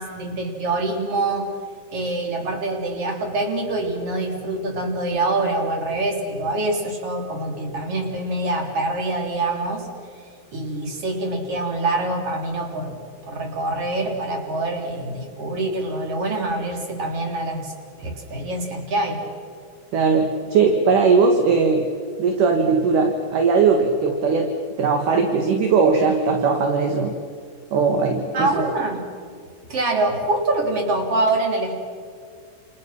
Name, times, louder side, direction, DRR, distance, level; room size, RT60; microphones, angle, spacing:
voice 1, 0.0-1.5 1.9-9.8 10.5-13.0 13.3-17.7 18.0-19.2 28.3-29.0 29.7-31.7, right 2 dB, 35° right, 2 dB, 4.1 m, -25 dB
voice 2, 19.9-21.9 22.2-24.5 24.8-27.1 27.7-28.7, right 5 dB, 55° right, 4 dB, 2.7 m, -19 dB
30.0 x 29.0 x 6.2 m, 2.1 s
omnidirectional pair, 5.4 m